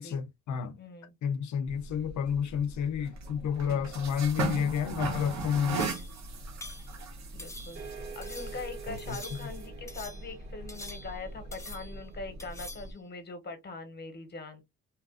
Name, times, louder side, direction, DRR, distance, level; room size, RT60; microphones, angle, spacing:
voice 1, 0.0-0.8 1.2-5.8 9.1-9.2, left 7 dB, 70° left, 0.6 m, -30 dB
voice 2, 0.8-1.2 7.3-14.6, left 3 dB, 35° left, 1.1 m, -42 dB
sound 1, 1.7-12.9, right 3 dB, 65° right, 1.0 m, -39 dB
sound 2, 5.8-6.2 6.6-6.9 7.4-7.9 8.2-8.6 9.0-9.6 9.9-10.3 10.7-11.3 11.5-12.0 12.4-12.9, left 1 dB, 10° left, 0.9 m, -46 dB
sound 3, 7.8-12.8, right 6 dB, 40° right, 1.3 m, -48 dB
2.9 x 2.4 x 2.4 m
cardioid pair, 90°, 30 cm